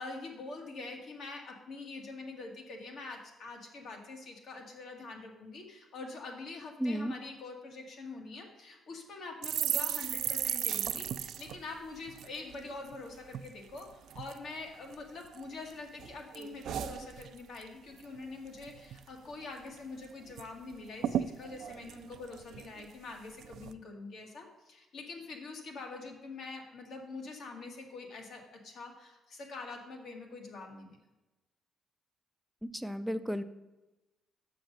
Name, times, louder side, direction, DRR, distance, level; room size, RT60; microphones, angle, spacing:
voice 1, 0.0-31.0, left 3 dB, 60° left, 2 dB, 1.6 m, -45 dB
voice 2, 6.8-7.1 32.7-33.4, equal, ahead, 10 dB, 0.4 m, -33 dB
sound 1, 9.4-13.0 13.3-13.5 13.8-14.4 14.9-15.7 16.0-17.7 18.0-18.2 18.5-19.0 19.4-19.5 19.8-20.5 20.7-20.8 21.0-22.9 23.4-23.7, right 10 dB, 70° right, 0.4 m, -36 dB
6.4 x 5.8 x 6.4 m, 1.0 s
cardioid pair, 135°, 0 cm